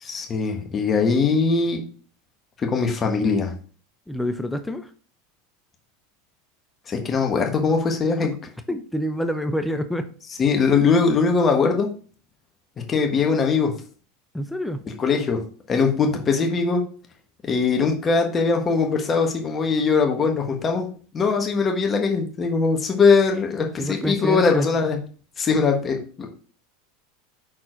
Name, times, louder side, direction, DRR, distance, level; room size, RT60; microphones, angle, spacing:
voice 1, 0.0-1.8 2.6-3.5 6.9-8.3 10.4-11.9 12.9-13.7 15.0-15.4 15.7-16.8 17.4-20.9 21.1-25.0 25.4-26.3, left 4 dB, 30° left, 3 dB, 1.4 m, -21 dB
voice 2, 4.1-4.9 8.7-10.1 14.3-14.9 23.8-24.7, equal, 5° left, 8 dB, 0.7 m, -27 dB
6.2 x 4.2 x 5.0 m, 0.41 s
hypercardioid pair, 90°, 0 cm